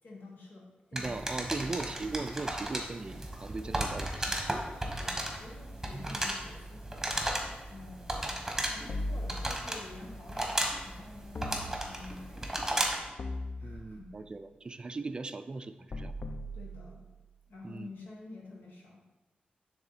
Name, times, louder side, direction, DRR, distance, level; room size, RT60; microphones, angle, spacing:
voice 1, 0.0-1.2 3.6-3.8 4.6-6.9 7.7-12.9 13.2-14.1 16.5-17.0 17.5-19.0, left 2 dB, 80° left, -2 dB, 1.7 m, -49 dB
voice 2, 0.9-4.5 5.9-6.2 13.6-16.1 17.6-17.9, right 3 dB, 30° right, 10 dB, 0.3 m, -39 dB
sound 1, 1.0-13.1, right 1 dB, 10° right, 1.1 m, -35 dB
sound 2, 8.9-10.0 11.3-12.3 13.2-14.3 15.9-17.3, left 1 dB, 45° left, 0.6 m, -39 dB
9.8 x 3.5 x 4.1 m, 1.1 s
wide cardioid pair, 115°, 3 cm